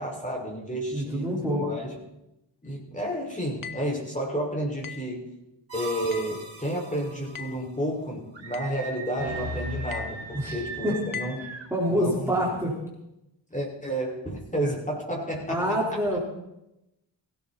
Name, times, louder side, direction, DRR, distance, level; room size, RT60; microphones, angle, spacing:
voice 1, 0.0-2.0 2.6-5.3 5.7-11.5 11.9-12.4 13.5-16.0, right 1 dB, 15° left, -1 dB, 5.3 m, -31 dB
voice 2, 0.9-1.7 10.3-10.5 10.8-11.0 11.7-12.8 15.5-16.2, equal, 5° right, -5 dB, 4.2 m, -26 dB
sound 1, 3.6-4.0 4.8-5.2 6.1-6.4 7.4-7.7 8.5-8.8 9.9-10.2 11.1-11.5, left 7 dB, 50° left, 1.3 m, -39 dB
sound 2, 5.7-7.4 9.2-10.7, equal, 30° right, 5.6 m, -37 dB
Screaming, 8.3-11.7, right 4 dB, 80° right, 3.2 m, -40 dB
17.0 x 17.0 x 4.2 m, 0.87 s
cardioid pair, 70°, 44 cm